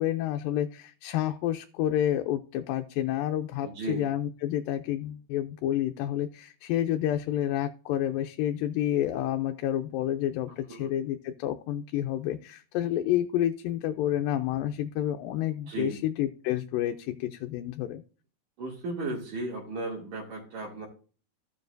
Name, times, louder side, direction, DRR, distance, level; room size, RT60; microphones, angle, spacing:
voice 1, 0.0-18.0, left 12 dB, 85° left, 6 dB, 2.3 m, -29 dB
voice 2, 3.6-4.1 10.7-10.9 15.7-16.0 18.6-20.9, right 2 dB, 70° right, -5 dB, 3.7 m, -35 dB
15.0 x 7.0 x 2.6 m, 0.38 s
omnidirectional pair, 3.9 m